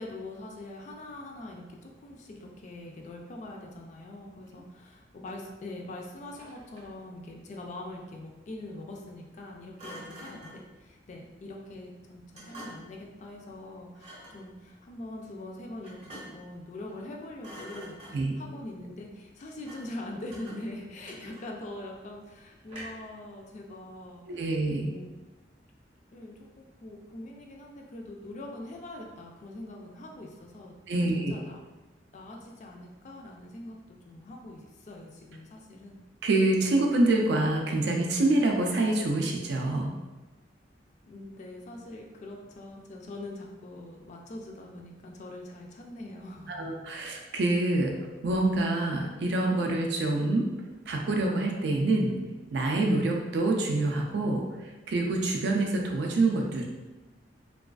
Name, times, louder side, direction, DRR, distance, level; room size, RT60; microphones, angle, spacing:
voice 1, 0.0-25.2 26.1-31.6 32.1-36.0 41.0-46.7, left 1 dB, 40° left, 1 dB, 0.3 m, -43 dB
Thump thud, 6.2-7.0 9.8-10.7 12.3-13.0 13.9-14.4 15.8-16.5 16.9-17.1 17.4-18.4 19.6-20.0 20.3-21.7 22.7-23.1, equal, 40° right, 0.7 m, -46 dB
voice 2, 24.3-24.9 30.9-31.3 36.2-39.9 46.5-47.9 48.2-50.5 50.9-52.2 52.5-54.4 54.9-56.7, right 2 dB, 65° right, 1 dB, 0.4 m, -26 dB
2.3 x 2.3 x 2.3 m, 1.2 s
head